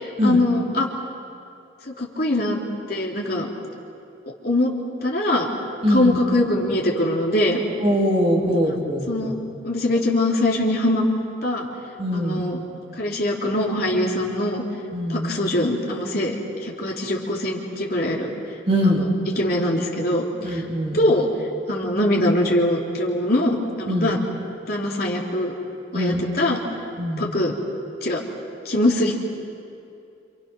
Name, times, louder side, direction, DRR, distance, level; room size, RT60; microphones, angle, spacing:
voice 1, 0.2-0.9 1.9-2.6 2.9-3.5 4.4-4.7 5.0-5.5 5.9-7.6 9.1-9.3 9.6-11.1 11.4-11.7 12.1-12.6 13.0-14.6 15.1-16.4 16.6-18.3 18.8-19.1 19.4-20.6 20.9-21.3 21.7-24.2 24.7-25.5 25.9-26.6 27.2-27.5 28.0-28.2 28.6-29.1, left 1 dB, 50° left, -2 dB, 3.4 m, -22 dB
voice 2, 5.8-6.2 7.8-9.3 12.0-12.5 14.9-15.4 18.7-19.0 20.4-21.0 23.9-24.1 25.9-26.2 27.0-27.2, equal, 30° right, -3 dB, 3.6 m, -22 dB
29.5 x 28.0 x 6.2 m, 2.6 s
head